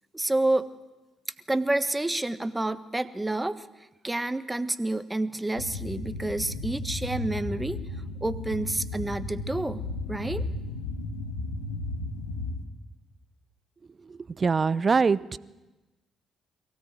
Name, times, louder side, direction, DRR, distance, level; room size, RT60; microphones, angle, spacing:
voice 1, 0.1-0.7 1.5-3.6 4.0-7.8 8.2-10.5, right 2 dB, 15° right, 13 dB, 1.4 m, -29 dB
sound 1, 5.6-12.6, left 2 dB, 90° left, 2.0 m, -34 dB
voice 2, 14.1-15.4, right 5 dB, 40° right, 20 dB, 0.7 m, -24 dB
22.5 x 16.5 x 9.2 m, 1.1 s
hypercardioid pair, 45°, 0 cm